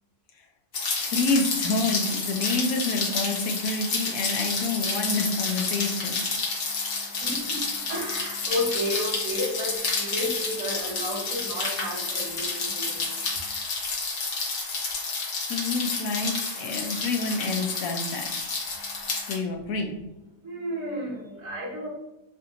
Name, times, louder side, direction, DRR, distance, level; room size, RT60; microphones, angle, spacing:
Rain, 0.7-19.4, left 4 dB, 50° left, 0.7 m, -30 dB
voice 1, 1.0-6.3 15.5-18.3 19.3-20.0, left 3 dB, 80° left, 4 dB, 1.0 m, -28 dB
voice 2, 6.4-13.6 18.7-19.3 20.3-21.9, left 1 dB, 65° right, -5 dB, 1.3 m, -33 dB
3.3 x 2.7 x 2.7 m, 0.91 s
omnidirectional pair, 1.5 m